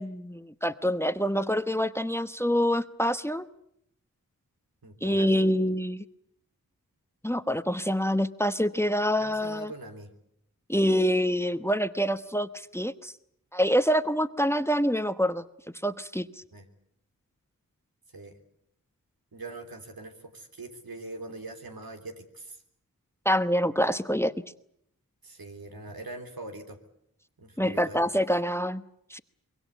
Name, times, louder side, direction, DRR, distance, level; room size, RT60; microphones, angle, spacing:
voice 1, 0.0-3.5 5.0-6.0 7.2-9.7 10.7-13.1 13.5-15.4 15.8-16.3 23.2-24.3 27.6-28.8 29.1-29.2, equal, 5° left, 12 dB, 1.0 m, -26 dB
voice 2, 4.8-5.4 9.2-10.1 16.5-16.7 18.1-18.4 19.3-22.6 25.2-26.8 27.4-28.1, right 2 dB, 85° right, 4 dB, 3.4 m, -42 dB
25.0 x 22.5 x 8.2 m, 0.72 s
wide cardioid pair, 50°, 35 cm